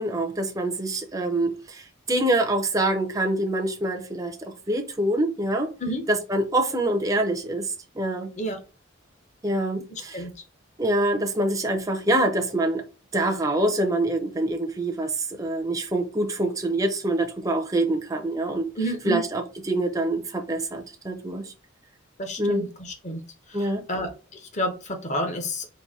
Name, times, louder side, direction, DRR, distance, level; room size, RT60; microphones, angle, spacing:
voice 1, 0.0-5.7 6.1-8.3 9.4-10.2 10.8-12.8 13.1-18.6 19.0-21.5 22.4-22.7 23.5-23.8, right 1 dB, 15° right, 0.5 m, -25 dB
voice 2, 18.8-19.2 22.2-23.2 23.5-25.7, equal, 35° left, 0.8 m, -30 dB
4.0 x 2.6 x 3.6 m
head